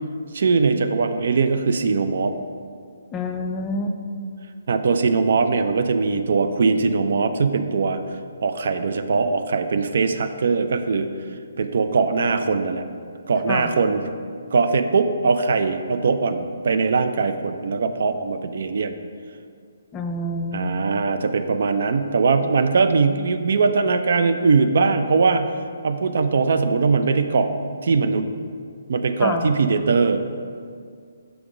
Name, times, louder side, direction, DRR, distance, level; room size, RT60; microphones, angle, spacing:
voice 1, 0.3-2.3 4.7-8.0 8.4-11.1 11.6-12.8 13.3-14.0 14.5-18.9 20.5-25.5 25.8-27.5 27.8-28.3 28.9-30.2, right 4 dB, 60° right, 9 dB, 0.3 m, -21 dB
voice 2, 3.1-4.0 13.5-13.7 19.9-20.7 29.2-29.5, left 2 dB, 20° left, 5 dB, 0.4 m, -27 dB
5.9 x 3.6 x 4.9 m, 2.2 s
figure-of-eight pair, 135°, 0 cm